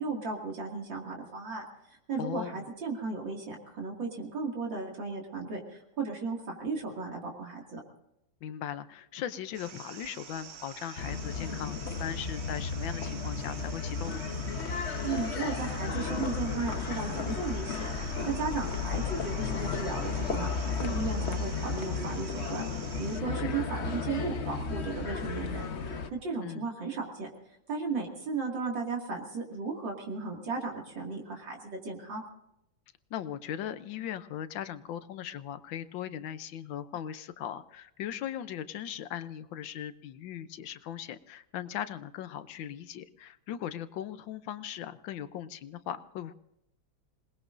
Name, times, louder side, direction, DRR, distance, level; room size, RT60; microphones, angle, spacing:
voice 1, 0.0-7.8 15.0-22.6 23.0-27.3 27.7-32.2, right 4 dB, 65° right, 0 dB, 3.1 m, -35 dB
voice 2, 2.2-2.6 8.4-14.2 23.3-23.6 26.4-26.7 33.1-46.3, left 10 dB, 75° left, 12 dB, 1.5 m, -39 dB
sound 1, 9.5-23.2, right 7 dB, 85° right, 0.5 m, -47 dB
sound 2, 11.0-26.1, left 5 dB, 45° left, 1.0 m, -34 dB
27.0 x 20.0 x 2.6 m, 0.80 s
omnidirectional pair, 2.2 m